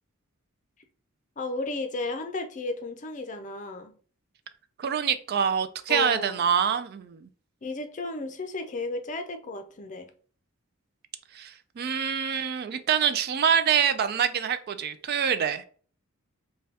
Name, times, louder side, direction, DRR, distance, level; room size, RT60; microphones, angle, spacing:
voice 1, 1.4-3.9 5.9-6.4 7.6-10.1, left 2 dB, 35° left, 0.5 m, -33 dB
voice 2, 4.8-7.3 11.3-15.6, right 7 dB, 50° right, 0.3 m, -25 dB
5.3 x 2.3 x 2.8 m
head